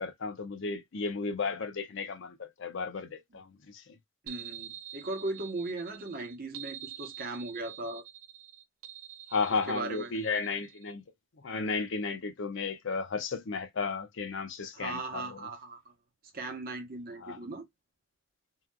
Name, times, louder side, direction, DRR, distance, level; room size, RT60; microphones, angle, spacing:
voice 1, 0.0-3.8 9.3-11.0 11.4-15.5 17.2-17.4, left 4 dB, 65° left, 0.6 m, -34 dB
voice 2, 4.2-8.0 9.7-10.1 14.7-15.8 16.3-17.7, right 2 dB, 45° right, 0.9 m, -38 dB
sound 1, 4.3-10.9, right 11 dB, 75° right, 0.5 m, -47 dB
2.8 x 2.4 x 2.2 m
head